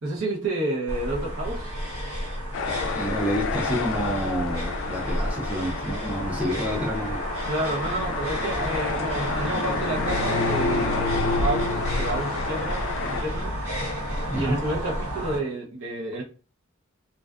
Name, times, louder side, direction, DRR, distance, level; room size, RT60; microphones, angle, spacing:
voice 1, 0.0-1.7 7.4-13.5 14.3-16.2, right 2 dB, 70° right, 0.9 m, -30 dB
sound 1, 0.9-15.4, equal, 85° right, 1.3 m, -31 dB
sound 2, 2.5-13.2, left 4 dB, 60° left, 0.3 m, -30 dB
voice 2, 2.9-7.2 14.3-14.6, equal, 5° right, 0.4 m, -28 dB
2.5 x 2.3 x 2.3 m
head